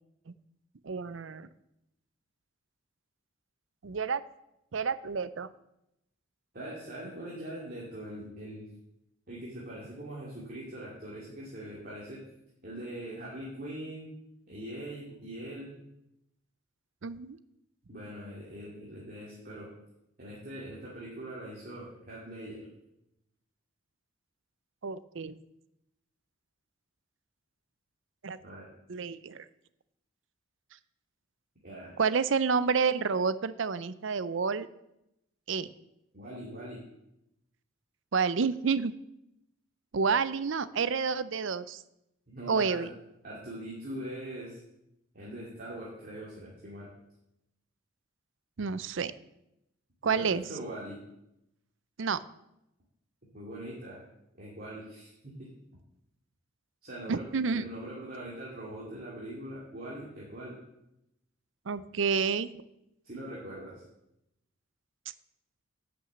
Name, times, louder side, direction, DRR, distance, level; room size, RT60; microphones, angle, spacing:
voice 1, 0.8-1.5 3.8-4.2 4.7-5.5 17.0-17.4 24.8-25.3 28.2-28.4 28.9-29.4 32.0-34.7 35.5-35.7 38.1-38.9 39.9-41.8 42.5-42.9 48.6-49.1 50.0-50.4 52.0-52.2 57.1-57.6 61.7-62.5, right 5 dB, 65° right, 16 dB, 0.5 m, -29 dB
voice 2, 6.5-8.7 9.3-12.2 12.6-14.1 14.5-15.7 17.9-19.7 20.2-22.7 28.4-28.7 31.6-31.9 36.1-36.8 42.3-42.9 43.2-44.6 45.1-46.9 50.0-51.0 53.3-54.0 54.4-55.5 56.8-57.2 57.5-60.6 63.0-63.8, right 1 dB, 45° right, -5 dB, 2.5 m, -42 dB
10.5 x 6.2 x 7.5 m, 0.84 s
head